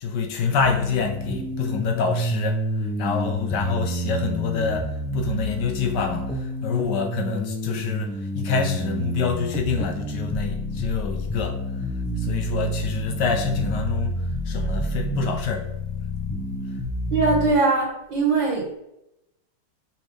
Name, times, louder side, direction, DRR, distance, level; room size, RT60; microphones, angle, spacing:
voice 1, 0.0-11.6 12.2-15.6, left 5 dB, 70° left, 5 dB, 1.3 m, -27 dB
sound 1, 0.6-17.5, right 1 dB, 5° left, 0.8 m, -29 dB
voice 2, 17.1-18.8, right 3 dB, 75° right, -3 dB, 2.4 m, -21 dB
6.1 x 4.2 x 4.8 m, 0.84 s
omnidirectional pair, 2.1 m